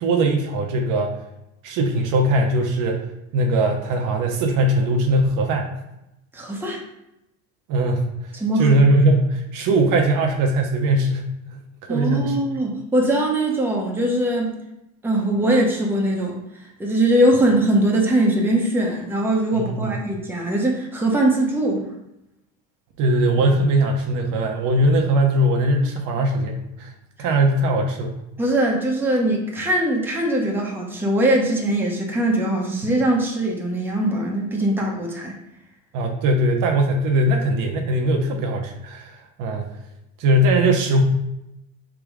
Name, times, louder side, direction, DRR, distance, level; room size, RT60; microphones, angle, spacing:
voice 1, 0.0-1.1 1.6-3.1 3.3-5.7 7.7-8.1 8.6-11.6 11.9-12.5 19.5-19.9 23.0-26.9 27.2-28.1 35.9-39.7 40.2-41.0, right 1 dB, 50° right, 2 dB, 0.9 m, -20 dB
voice 2, 6.3-6.8 8.4-8.8 11.9-14.6 15.0-16.4 16.8-21.8 28.4-35.3, right 1 dB, 5° right, -2 dB, 0.9 m, -21 dB
3.6 x 2.9 x 4.7 m, 0.86 s
supercardioid pair, 105°, 39 cm